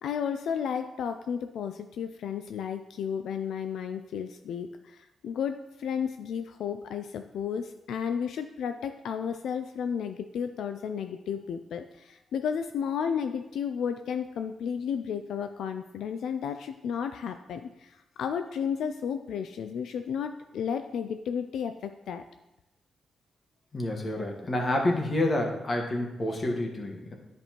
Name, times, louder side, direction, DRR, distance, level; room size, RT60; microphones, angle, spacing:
voice 1, 0.0-22.2, left 7 dB, 85° left, 8 dB, 0.3 m, -33 dB
voice 2, 23.7-27.1, left 1 dB, 40° left, 2 dB, 1.3 m, -28 dB
9.8 x 5.2 x 2.9 m, 0.94 s
cardioid pair, 95°, 0 cm